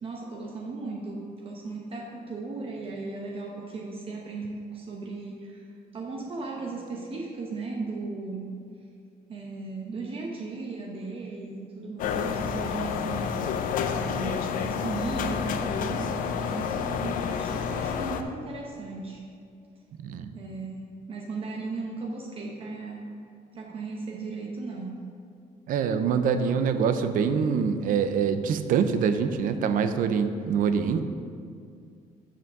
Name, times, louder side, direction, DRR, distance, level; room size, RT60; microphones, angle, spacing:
voice 1, 0.0-8.5 9.3-13.6 13.9-19.2 20.3-23.0 23.5-25.0, right 3 dB, 40° right, -1 dB, 0.8 m, -36 dB
sound 1, 12.0-18.2, left 7 dB, 70° left, 0.5 m, -29 dB
voice 2, 20.0-20.3 25.7-31.0, right 6 dB, 70° right, 9 dB, 0.5 m, -25 dB
7.1 x 6.0 x 6.0 m, 2.3 s
cardioid pair, 150°, 15 cm